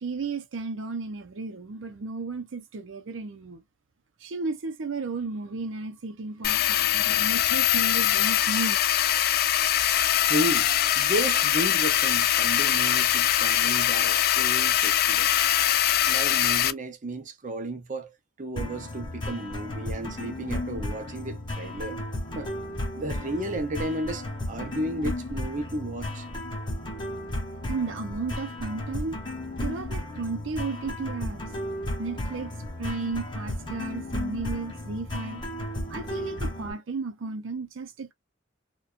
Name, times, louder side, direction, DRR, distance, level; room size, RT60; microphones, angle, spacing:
voice 1, 0.0-3.6 4.2-8.8 27.7-29.2 29.6-31.4 32.0-32.5 32.8-35.4 35.9-38.1, right 4 dB, 90° right, 0.5 m, -34 dB
sound 1, 6.4-16.7, left 11 dB, 55° left, 0.3 m, -23 dB
voice 2, 10.2-10.7 11.0-15.3 16.1-18.1 18.4-22.0 22.3-22.5 23.0-26.2, right 1 dB, 40° right, 0.6 m, -33 dB
sound 2, 18.6-36.7, left 1 dB, 25° left, 0.9 m, -34 dB
2.5 x 2.2 x 2.4 m
head